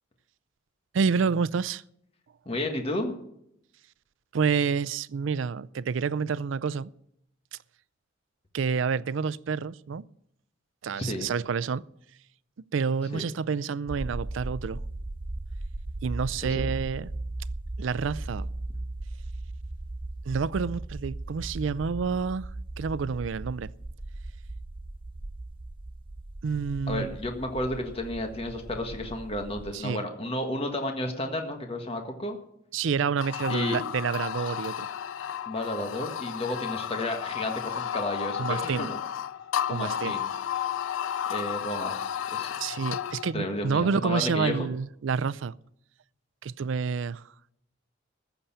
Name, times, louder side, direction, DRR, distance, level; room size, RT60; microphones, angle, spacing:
voice 1, 0.9-1.8 4.3-6.9 7.5-7.6 8.5-10.1 10.8-11.8 12.6-14.8 16.0-17.1 17.8-18.5 20.3-22.5 22.8-23.7 26.4-27.1 29.7-30.0 32.7-34.9 38.4-38.9 39.7-40.2 42.6-45.5 46.4-47.2, right 5 dB, 75° right, 0.4 m, -28 dB
voice 2, 2.4-3.1 11.0-11.3 13.1-13.3 16.4-16.6 26.9-32.4 33.5-33.8 35.5-39.0 39.7-40.3 41.3-42.0 42.3-42.5 43.3-44.7, left 1 dB, 30° left, 1.6 m, -32 dB
sound 1, 13.9-29.7, right 2 dB, 25° right, 0.5 m, -37 dB
sound 2, 33.2-43.3, left 9 dB, 90° left, 0.4 m, -33 dB
14.5 x 6.9 x 8.6 m
head